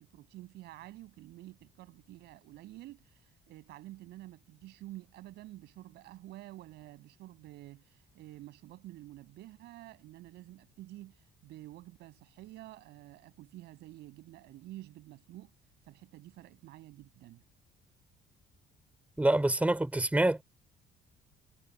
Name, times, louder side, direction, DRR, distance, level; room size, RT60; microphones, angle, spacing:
voice 1, 0.0-15.5 15.8-17.4, right 16 dB, 80° right, 6.7 m, -50 dB
voice 2, 19.2-20.4, right 1 dB, 10° right, 3.0 m, -26 dB
cardioid pair, 110°, 17 cm